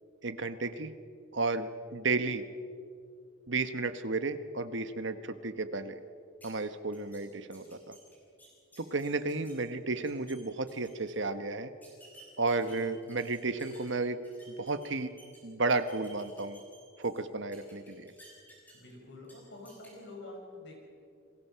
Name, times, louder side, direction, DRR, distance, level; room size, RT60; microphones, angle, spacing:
voice 1, 0.2-0.9 1.3-2.4 3.5-6.0 6.4-7.9 8.8-11.7 12.4-14.2 14.5-15.1 15.4-16.6 17.0-18.1, right 3 dB, 60° right, 10 dB, 1.2 m, -33 dB
sound 1, 6.4-6.5 6.9-7.2 7.5-9.5 9.9-10.4 10.7-11.1 11.8-13.9 14.2-15.4 15.7-17.2 17.5-18.9 19.2-19.3 19.7-19.9, equal, 10° left, 6.4 m, -56 dB
voice 2, 18.7-20.7, left 2 dB, 60° left, 1 dB, 6.2 m, -47 dB
30.0 x 21.5 x 5.8 m, 2.4 s
head